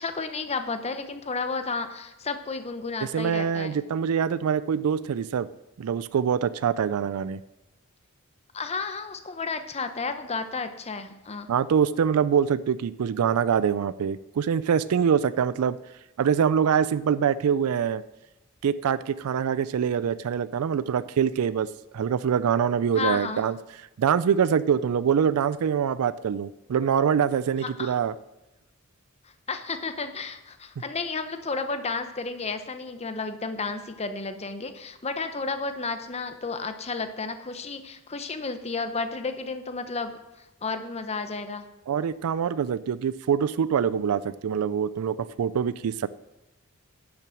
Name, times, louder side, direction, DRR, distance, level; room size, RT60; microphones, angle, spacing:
voice 1, 0.0-3.8 8.5-11.5 22.9-23.4 27.6-27.9 29.5-40.2 40.6-41.7, left 4 dB, 30° left, 8 dB, 0.8 m, -32 dB
voice 2, 3.1-5.5 5.8-7.4 11.5-15.8 16.2-18.0 18.6-21.7 21.9-23.6 24.0-28.1 41.9-46.1, right 7 dB, 85° right, 17 dB, 0.4 m, -24 dB
10.5 x 6.0 x 6.3 m, 1.0 s
head